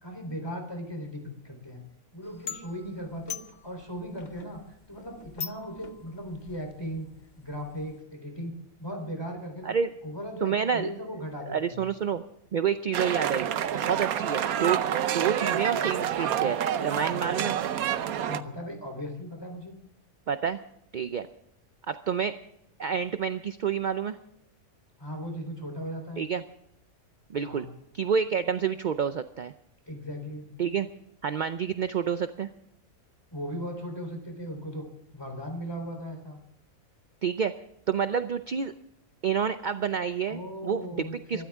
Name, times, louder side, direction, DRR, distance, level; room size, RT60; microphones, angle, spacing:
voice 1, 0.0-1.8 2.1-3.4 3.6-7.1 7.4-9.7 10.0-11.8 17.1-17.5 18.2-19.8 25.0-26.3 27.4-27.7 29.9-30.5 33.3-34.8 35.1-36.4 40.3-41.5, equal, 15° left, 3 dB, 3.7 m, -37 dB
sound 1, 2.2-8.0, left 7 dB, 40° left, 0.8 m, -44 dB
voice 2, 10.4-10.9 11.5-12.2 12.5-14.8 15.1-17.5 20.3-20.6 20.9-21.3 21.9-22.4 22.8-24.2 26.2-26.4 27.3-27.7 27.9-29.5 30.6-30.9 31.2-32.5 37.2-37.5 37.9-38.7 39.2-40.9 41.3-41.5, right 7 dB, 55° right, 10 dB, 0.5 m, -28 dB
sound 2, 12.9-18.4, right 9 dB, 85° right, 1.2 m, -28 dB
24.5 x 13.0 x 3.6 m, 0.79 s
omnidirectional pair, 1.5 m